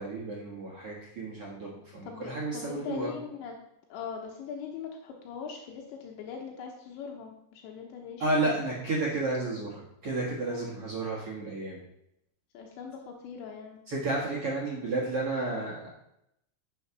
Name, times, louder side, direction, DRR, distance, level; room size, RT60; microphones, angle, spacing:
voice 1, 0.0-3.1 8.2-11.8 13.9-15.9, right 2 dB, 55° right, -5 dB, 1.7 m, -32 dB
voice 2, 2.1-3.5 3.9-8.6 10.5-10.7 12.5-13.8, left 6 dB, 80° left, 0 dB, 3.2 m, -41 dB
8.4 x 6.9 x 5.9 m, 0.80 s
omnidirectional pair, 5.3 m